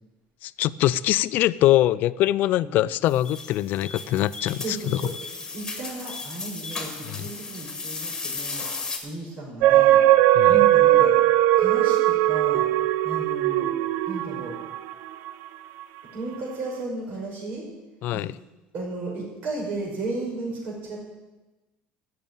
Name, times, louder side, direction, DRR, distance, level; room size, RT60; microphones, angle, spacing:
voice 1, 0.4-5.0 7.1-7.3 10.3-10.6 18.0-18.3, left 14 dB, 55° left, 18 dB, 0.4 m, -23 dB
sound 1, 3.1-9.0, left 4 dB, 15° left, 1.9 m, -35 dB
voice 2, 4.6-5.1 5.5-10.0 10.5-11.1 11.5-12.6 13.0-13.7 14.0-14.6 16.1-17.7 18.1-18.2 18.7-21.1, right 2 dB, 55° right, -1 dB, 5.1 m, -34 dB
sound 2, 9.6-15.3 15.8-15.9, right 14 dB, 75° right, 0.6 m, -19 dB
12.0 x 7.0 x 8.9 m, 1.1 s
cardioid pair, 145°, 4 cm